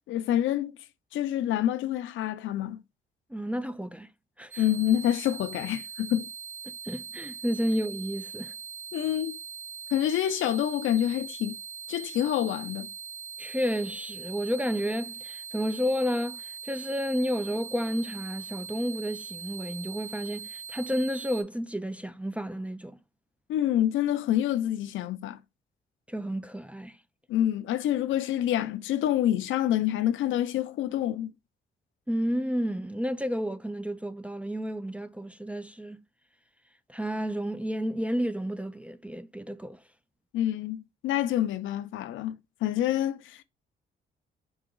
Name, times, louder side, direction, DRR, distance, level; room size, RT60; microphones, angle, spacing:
voice 1, 0.1-0.7 1.1-2.8 4.6-6.3 8.9-9.4 9.9-11.6 11.9-12.9 23.5-25.4 27.3-31.3 40.3-43.4, left 12 dB, 80° left, 0.5 m, -27 dB
voice 2, 3.3-4.1 4.4-4.6 6.7-8.5 13.4-23.0 26.1-27.0 32.1-36.0 36.9-39.8, equal, 5° right, 0.3 m, -31 dB
sound 1, 4.5-21.4, right 7 dB, 40° right, 1.6 m, -41 dB
4.7 x 2.9 x 3.8 m
cardioid pair, 90°, 20 cm